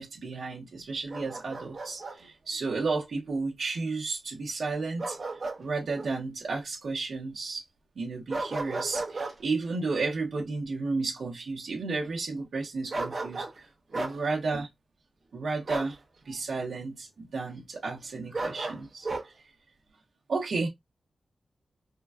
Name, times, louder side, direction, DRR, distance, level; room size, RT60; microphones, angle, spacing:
voice 1, 0.0-5.2 5.6-7.6 8.0-13.7 13.9-14.7 15.3-16.0 16.2-19.1 20.3-20.7, right 3 dB, 65° right, 0.9 m, -32 dB
Bark, 1.1-2.2 5.0-5.6 6.0-6.1 8.3-9.4 12.9-13.6 13.9-14.2 15.7-15.9 18.3-19.3, right 2 dB, 40° right, 1.0 m, -34 dB
3.7 x 2.3 x 2.3 m
wide cardioid pair, 175°, 0 cm